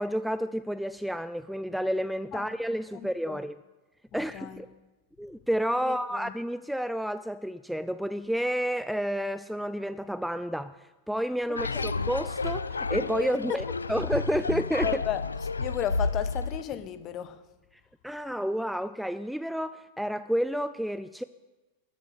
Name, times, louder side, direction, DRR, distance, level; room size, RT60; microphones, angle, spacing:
voice 1, 0.0-3.6 4.1-4.7 5.2-14.9 18.0-21.2, equal, ahead, 0.3 m, -30 dB
voice 2, 2.9-3.4 4.1-4.6 5.9-6.3 11.5-11.9 13.5-13.6 14.8-15.2 15.6-17.4, left 11 dB, 35° left, 1.0 m, -34 dB
sound 1, 11.6-16.6, left 3 dB, 75° left, 0.4 m, -31 dB
13.0 x 7.4 x 8.1 m
figure-of-eight pair, 90°, 0 cm